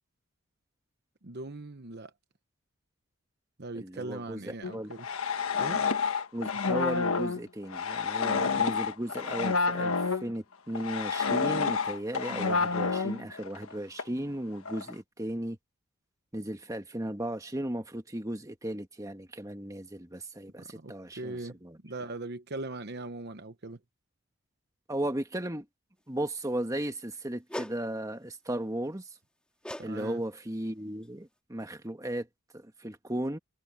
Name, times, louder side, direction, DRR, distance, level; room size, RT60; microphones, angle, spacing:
voice 1, 1.2-2.1 3.6-5.1 5.6-5.8 20.6-21.6 21.8-23.8 29.8-30.2, right 2 dB, 50° right, 1.0 m, -40 dB
voice 2, 3.7-4.9 6.3-15.6 16.3-21.8 24.9-25.6 26.1-29.0 29.8-32.3 32.5-33.4, right 1 dB, 15° right, 1.4 m, -35 dB
sound 1, 4.6-10.3 10.7-13.7 14.0-14.1 14.7-14.9, left 5 dB, 70° left, 1.4 m, -29 dB
sound 2, 27.5-27.8 29.6-29.9 30.2-30.5 31.0-31.1, equal, 5° left, 1.9 m, -39 dB
head